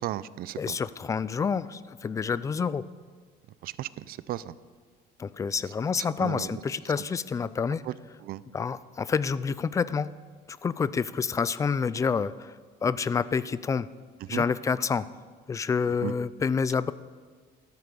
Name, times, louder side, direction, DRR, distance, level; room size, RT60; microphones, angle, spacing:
voice 1, 0.0-0.8 3.6-4.5 6.2-6.5 7.9-8.0 8.3-8.4 14.3-14.4 16.0-16.1, right 14 dB, 55° right, 17 dB, 0.5 m, -34 dB
voice 2, 0.6-2.8 5.2-7.8 8.5-10.1 10.5-13.9 14.3-15.1 15.5-16.9, left 5 dB, 20° left, 17 dB, 0.3 m, -28 dB
13.5 x 13.0 x 6.9 m, 1.5 s
cardioid pair, 165°, 18 cm